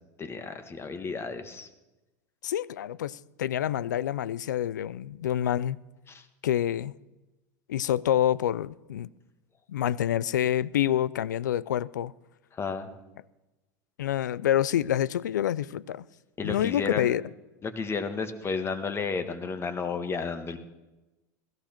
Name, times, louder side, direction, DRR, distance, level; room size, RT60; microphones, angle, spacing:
voice 1, 0.2-1.7 6.1-6.2 12.5-12.9 16.4-17.1 17.6-20.6, left 5 dB, 25° left, 1.6 m, -32 dB
voice 2, 2.4-5.8 6.4-6.9 7.7-9.1 9.7-12.1 14.0-16.0 16.4-17.2, left 11 dB, 90° left, 0.4 m, -27 dB
17.0 x 14.5 x 4.4 m
hypercardioid pair, 95°, 10 cm